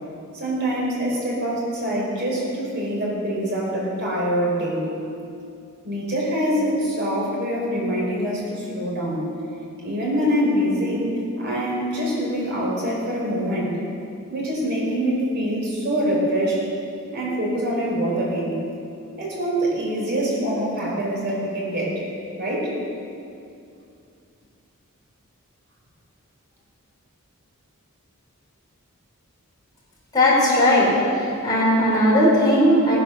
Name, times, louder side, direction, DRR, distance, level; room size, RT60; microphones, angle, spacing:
voice 1, 0.3-4.9 5.8-9.3 9.8-13.8 14.3-16.7 17.1-18.6 19.2-22.0 22.4-22.7, equal, 50° right, -4 dB, 4.3 m, -24 dB
voice 2, 30.1-33.0, equal, 20° left, -6 dB, 4.8 m, -18 dB
19.0 x 10.0 x 6.6 m, 2.5 s
head